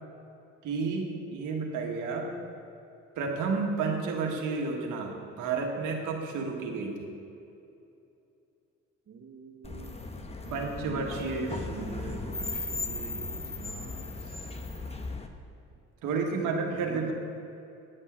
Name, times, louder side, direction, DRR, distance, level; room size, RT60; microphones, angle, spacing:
voice 1, 0.6-2.3 3.2-7.1 10.5-11.9 16.0-17.1, right 4 dB, 85° right, 1 dB, 1.5 m, -31 dB
voice 2, 9.1-14.6 16.0-17.1, right 4 dB, 50° right, 2 dB, 1.0 m, -46 dB
sound 1, 9.6-15.3, left 3 dB, 20° left, 0.9 m, -37 dB
10.0 x 5.5 x 8.1 m, 2.7 s
cardioid pair, 90°, 30 cm